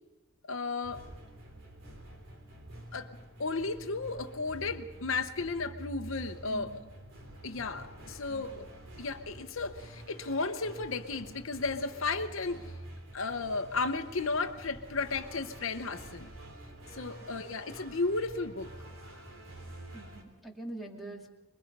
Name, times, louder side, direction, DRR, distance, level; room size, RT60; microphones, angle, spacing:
voice 1, 0.5-1.0 2.9-3.1 3.4-6.7 7.4-8.7 9.0-12.6 13.1-16.3 16.9-18.7, left 3 dB, 70° left, 8 dB, 0.9 m, -34 dB
sound 1, 0.8-20.2, right 1 dB, 65° right, 3.4 m, -48 dB
voice 2, 6.5-6.9 8.3-8.7 17.2-17.3 19.9-21.3, right 2 dB, ahead, 1 dB, 2.4 m, -44 dB
25.0 x 21.5 x 5.4 m, 1.2 s
head